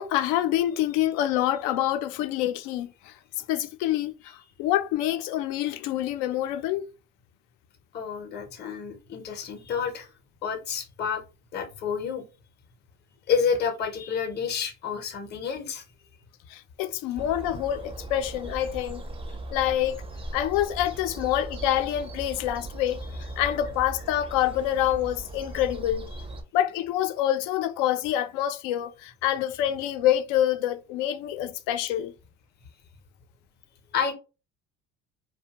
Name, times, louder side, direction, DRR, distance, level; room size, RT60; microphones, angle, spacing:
voice 1, 0.0-6.8 16.5-19.0 19.5-20.0 20.3-23.0 23.4-26.1 26.5-32.1, left 12 dB, 80° left, 0.5 m, -26 dB
voice 2, 7.9-10.1 10.4-11.2 11.5-12.2 13.3-15.8 33.9-34.1, left 6 dB, 30° left, 0.6 m, -29 dB
sound 1, 17.2-26.4, right 2 dB, 15° right, 0.4 m, -39 dB
2.5 x 2.2 x 2.7 m
supercardioid pair, 95°, 34 cm